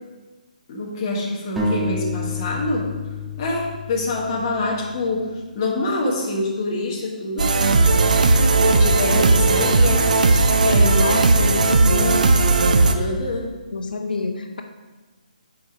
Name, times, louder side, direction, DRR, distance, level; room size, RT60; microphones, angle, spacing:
voice 1, 0.7-2.8 3.4-5.2 5.5-7.4 8.7-11.1 12.9-13.5, left 2 dB, 25° left, -3 dB, 1.2 m, -25 dB
sound 1, 1.6-5.2, left 2 dB, ahead, 0.5 m, -29 dB
sound 2, 7.4-12.9, right 3 dB, 60° right, 0.6 m, -16 dB
voice 2, 11.0-12.2 13.7-14.6, left 3 dB, 80° left, 5 dB, 0.8 m, -27 dB
7.0 x 4.7 x 4.8 m, 1.2 s
hypercardioid pair, 175°, 5 cm